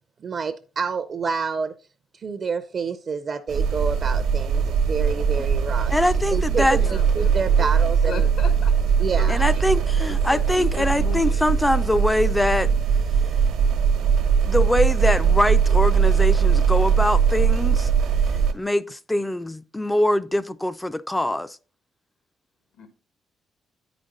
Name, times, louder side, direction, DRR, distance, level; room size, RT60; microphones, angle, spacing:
voice 1, 0.2-1.7 2.2-5.9 6.3-8.3 9.0-9.5, right 5 dB, 50° right, 0.5 m, -28 dB
sound 1, 3.5-18.5, right 6 dB, 85° right, 1.1 m, -20 dB
voice 2, 5.9-6.8 9.3-12.7 14.5-17.9 18.5-21.6, left 1 dB, 10° left, 0.3 m, -23 dB
voice 3, 6.6-8.7 9.2-11.5 22.8-22.9, left 5 dB, 75° left, 1.2 m, -38 dB
8.5 x 5.1 x 3.9 m
cardioid pair, 90°, 0 cm